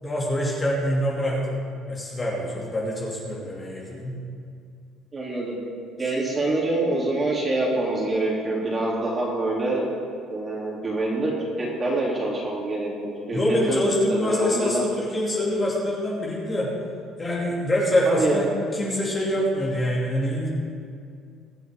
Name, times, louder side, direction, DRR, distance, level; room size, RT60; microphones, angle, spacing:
voice 1, 0.0-4.2 13.3-16.7 17.2-20.5, left 1 dB, 20° left, -4 dB, 2.5 m, -25 dB
voice 2, 5.1-5.5 6.0-9.9 10.3-11.3 11.6-13.4 13.7-14.8 18.1-18.4, right 2 dB, 25° right, -4 dB, 3.3 m, -26 dB
22.5 x 7.8 x 3.8 m, 2.4 s
cardioid pair, 135°, 0 cm